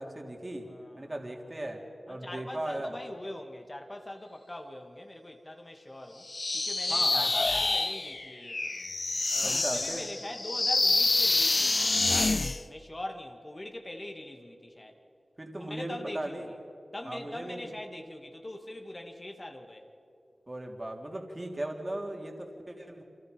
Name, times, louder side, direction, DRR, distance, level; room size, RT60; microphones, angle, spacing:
voice 1, 0.0-0.7 1.0-1.8 2.1-3.0 6.9-7.5 9.4-10.1 15.4-16.5 17.0-17.7 20.5-23.0, right 1 dB, 30° right, 1 dB, 3.4 m, -37 dB
voice 2, 0.7-1.3 2.1-8.8 9.3-15.0 15.6-16.4 16.9-19.9, left 1 dB, 30° left, 4 dB, 2.5 m, -42 dB
sound 1, 6.3-12.6, left 3 dB, 45° left, 0.6 m, -27 dB
29.5 x 26.5 x 5.4 m, 2.7 s
wide cardioid pair, 70°, 0 cm